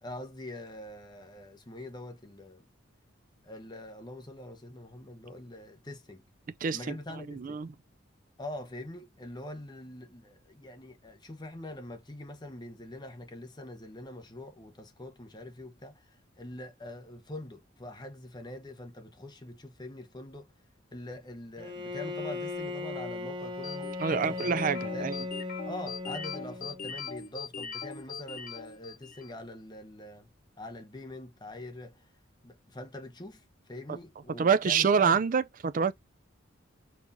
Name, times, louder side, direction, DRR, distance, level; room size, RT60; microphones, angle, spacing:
voice 1, 0.0-2.7 3.4-6.2 6.7-7.6 8.4-20.5 20.9-25.1 25.7-32.1 32.4-35.2, left 1 dB, 20° left, 1.0 m, -44 dB
voice 2, 6.6-7.0 7.3-7.7 24.0-25.3 33.9-34.0 34.4-35.9, right 6 dB, 40° right, 0.4 m, -26 dB
Bowed string instrument, 21.6-27.0, left 3 dB, 25° right, 0.8 m, -37 dB
sound 1, 23.6-29.4, left 5 dB, 45° left, 0.6 m, -41 dB
4.5 x 2.8 x 3.9 m
head